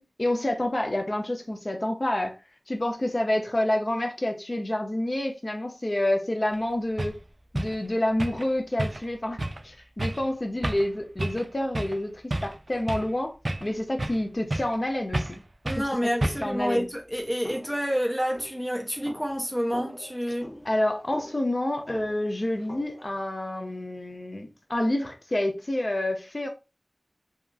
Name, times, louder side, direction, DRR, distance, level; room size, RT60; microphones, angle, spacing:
voice 1, 0.0-2.3 2.7-7.2 7.5-9.4 9.6-15.4 15.8-16.8 20.6-26.5, left 1 dB, 50° left, 0.6 m, -28 dB
sound 1, 6.5-6.6 7.0-7.2 7.5-7.8 8.2-8.5 8.8-9.1 9.4-9.6 10.0-10.2 10.6-10.9 11.2-11.5 11.7-12.0 12.3-13.1 13.4-14.2 14.5-14.8 15.1-15.4 15.6-15.9 16.2-16.6, right 1 dB, 60° right, 0.3 m, -30 dB
voice 2, 15.6-20.5, equal, ahead, 0.6 m, -28 dB
sound 2, 17.4-23.2, equal, 20° left, 1.2 m, -45 dB
2.8 x 2.4 x 2.3 m
wide cardioid pair, 50°, 0 cm